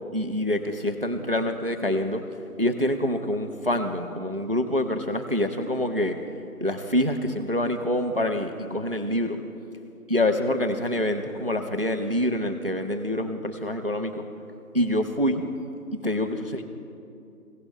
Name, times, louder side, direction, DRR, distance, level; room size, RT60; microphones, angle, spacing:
voice 1, 0.1-2.2 2.6-6.2 6.6-9.4 10.1-14.2 14.7-15.4 16.0-16.6, left 1 dB, 40° right, 7 dB, 0.5 m, -26 dB
17.0 x 6.8 x 3.2 m, 2.6 s
figure-of-eight pair, 165°, 45 cm